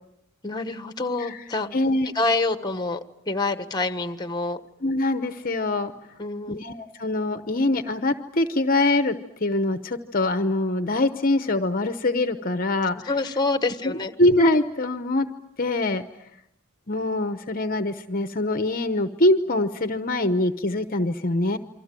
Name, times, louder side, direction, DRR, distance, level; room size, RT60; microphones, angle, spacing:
voice 1, 0.4-1.7 2.1-3.0 3.3-4.6 6.2-6.6 13.1-14.1, left 3 dB, 20° left, 9 dB, 1.3 m, -26 dB
voice 2, 1.7-2.1 4.8-5.9 6.5-9.1 9.4-13.0 13.8-13.9 14.2-15.3 15.6-16.0 16.9-21.6, left 2 dB, 40° left, 9 dB, 0.9 m, -23 dB
28.5 x 24.5 x 7.6 m, 0.81 s
head